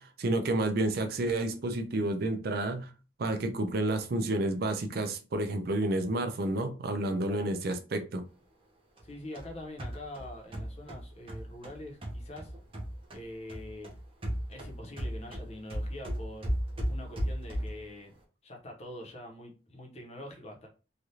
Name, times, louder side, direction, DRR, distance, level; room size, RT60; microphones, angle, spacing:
voice 1, 0.0-2.9 3.2-8.2, right 2 dB, 55° right, 0.5 m, -30 dB
voice 2, 9.0-12.5 13.1-13.9 14.5-16.6 16.9-18.1 18.4-20.7, left 1 dB, 35° left, 0.8 m, -44 dB
sound 1, 9.0-13.2 13.5-17.9, equal, 30° right, 0.8 m, -36 dB
3.2 x 2.3 x 2.7 m
head